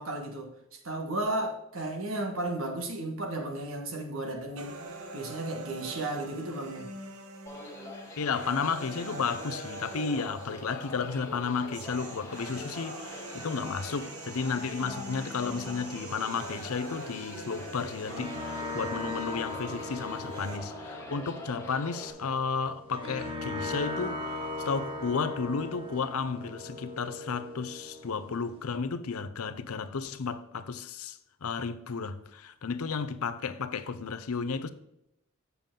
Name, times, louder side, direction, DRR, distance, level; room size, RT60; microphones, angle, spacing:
voice 1, 0.0-4.8 5.1-6.9, right 2 dB, 65° right, 1.5 m, -34 dB
sound 1, 4.6-20.6, right 2 dB, 90° right, 1.0 m, -44 dB
sound 2, 7.5-22.1, left 1 dB, 15° left, 1.2 m, -44 dB
voice 2, 8.2-34.7, left 5 dB, 80° left, 0.6 m, -33 dB
sound 3, 17.7-28.7, left 2 dB, 25° right, 1.4 m, -39 dB
7.3 x 6.9 x 3.8 m
head